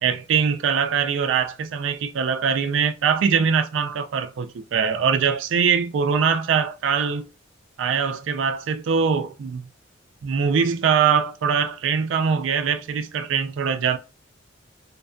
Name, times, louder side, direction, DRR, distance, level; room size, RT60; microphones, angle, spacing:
voice 1, 0.0-7.3 7.8-9.7 10.2-14.0, right 6 dB, 75° right, 0.4 m, -22 dB
2.5 x 2.3 x 2.4 m
head